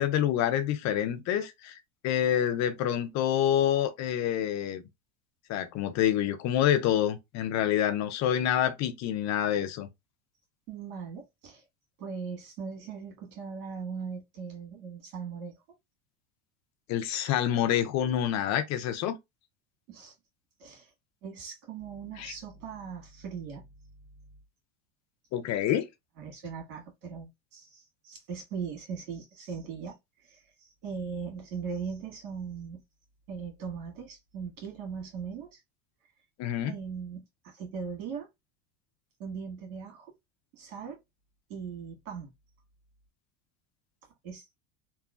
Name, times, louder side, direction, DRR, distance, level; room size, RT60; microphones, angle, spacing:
voice 1, 0.0-1.8 2.0-4.8 5.5-9.9 16.9-19.2 22.2-22.3 25.3-25.9 36.4-36.7, left 10 dB, 40° left, 0.5 m, -27 dB
voice 2, 10.7-11.6 12.0-15.6 19.9-20.1 20.6-20.9 21.2-24.3 26.2-32.8 33.3-35.6 36.7-38.3 39.2-40.1 40.5-41.0 41.5-42.3 44.2-44.6, right 6 dB, 75° right, 1.6 m, -39 dB
3.0 x 2.3 x 2.3 m
supercardioid pair, 115°, 42 cm